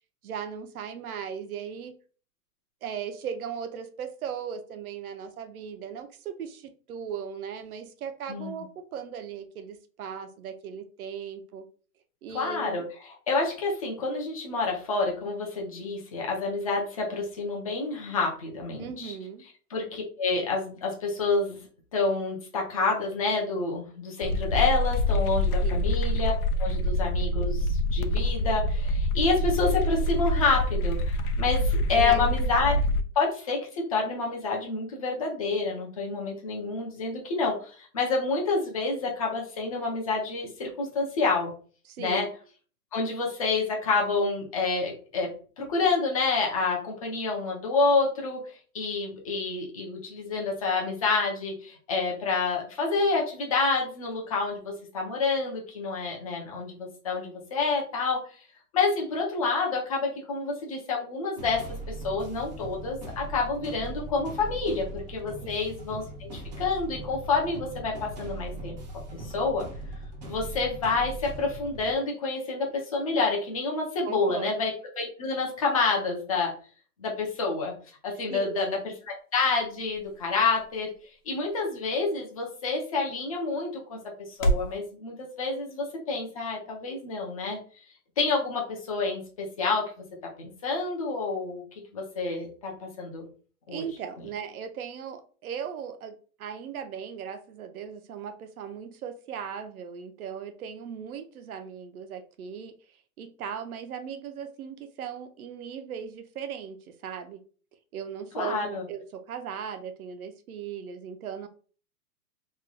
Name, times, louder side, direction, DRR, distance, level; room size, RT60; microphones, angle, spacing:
voice 1, 0.2-1.9 2.8-11.7 12.2-12.9 18.8-19.4 25.6-25.9 31.9-32.5 41.9-42.3 65.4-65.5 74.0-74.5 78.3-78.8 93.7-102.8 103.2-107.4 107.9-111.5, right 7 dB, 65° right, 8 dB, 0.7 m, -38 dB
voice 2, 8.3-8.6 12.3-19.1 19.7-21.6 21.9-26.3 26.6-32.7 33.2-41.5 42.0-42.3 42.9-45.3 45.6-58.4 58.7-68.8 69.1-69.7 70.3-74.7 75.0-76.5 77.0-77.7 78.0-78.8 79.1-80.9 81.2-84.0 84.3-87.6 88.2-89.9 90.4-91.6 91.9-93.3 93.7-93.9 108.3-108.8, left 4 dB, 25° left, -1 dB, 0.5 m, -28 dB
sound 1, 24.2-33.0, left 1 dB, 75° left, 0.6 m, -26 dB
sound 2, 61.4-71.9, right 2 dB, 30° right, 0.5 m, -39 dB
sound 3, 78.5-84.8, right 1 dB, 55° left, 1.0 m, -35 dB
3.1 x 2.3 x 3.8 m, 0.41 s
hypercardioid pair, 170°, 46 cm